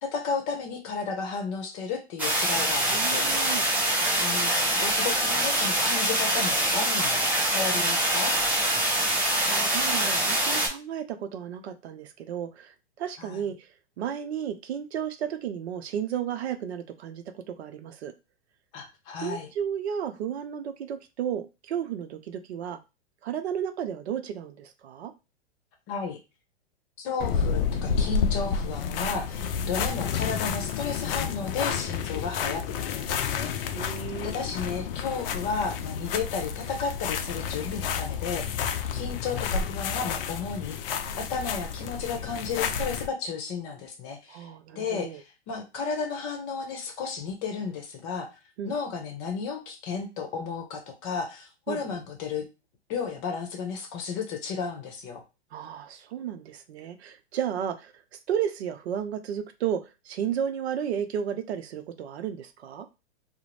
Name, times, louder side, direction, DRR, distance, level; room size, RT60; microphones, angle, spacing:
voice 1, 0.0-3.3 4.2-4.5 4.8-8.3 13.2-13.5 18.7-19.5 25.9-26.2 27.0-33.7 34.2-44.5 44.7-48.3 48.6-52.5 52.9-55.2, left 5 dB, 35° left, 3 dB, 0.8 m, -33 dB
sound 1, 2.2-10.7, right 1 dB, 5° right, 0.5 m, -24 dB
voice 2, 2.9-3.6 9.4-13.7 14.0-18.1 19.2-22.8 23.2-25.1 33.7-34.3 44.3-45.2 48.6-48.7 51.7-52.0 55.5-57.9 58.3-62.9, right 9 dB, 70° right, 8 dB, 0.5 m, -33 dB
sound 2, 27.2-43.1, left 6 dB, 55° left, 0.4 m, -30 dB
2.4 x 2.0 x 3.1 m, 0.27 s
hypercardioid pair, 120°, 33 cm